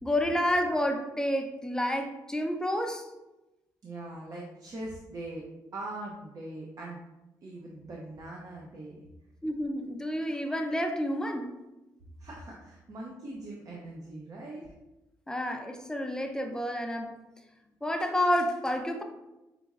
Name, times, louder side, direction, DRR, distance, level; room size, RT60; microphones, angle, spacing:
voice 1, 0.0-3.1 9.4-11.5 15.3-17.1 17.8-19.0, equal, 10° left, 4 dB, 0.5 m, -29 dB
voice 2, 3.8-5.4 5.7-7.0 7.4-8.9 12.2-14.7, right 2 dB, 50° right, -2 dB, 0.7 m, -41 dB
5.0 x 3.0 x 2.4 m, 1.0 s
cardioid pair, 90°, 8 cm